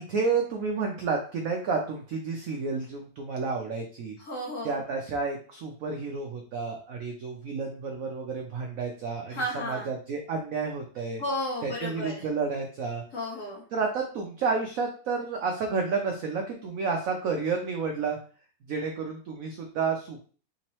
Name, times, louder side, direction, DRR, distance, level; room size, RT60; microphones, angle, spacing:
voice 1, 0.0-4.2 4.6-11.2 11.6-13.0 13.7-18.2 18.7-20.2, right 4 dB, 85° right, 2 dB, 0.7 m, -30 dB
voice 2, 4.2-4.8 9.3-9.9 11.2-12.2 13.1-13.6, left 1 dB, 55° left, -3 dB, 1.0 m, -33 dB
3.6 x 2.9 x 3.0 m, 0.42 s
omnidirectional pair, 2.0 m